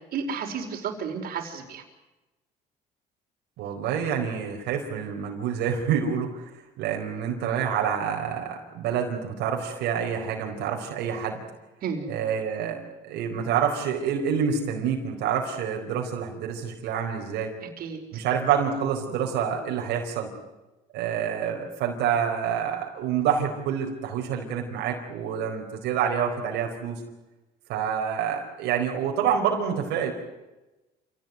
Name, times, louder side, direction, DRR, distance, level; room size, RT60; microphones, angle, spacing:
voice 1, 0.1-1.8 11.8-12.1 17.8-18.2, right 6 dB, 60° right, 4 dB, 5.0 m, -32 dB
voice 2, 3.6-6.5 6.8-11.4 12.1-17.5 18.1-20.3 20.9-27.0 27.7-30.1, right 7 dB, 85° right, 1 dB, 4.5 m, -27 dB
28.0 x 17.5 x 9.5 m, 1.1 s
cardioid pair, 110°, 17 cm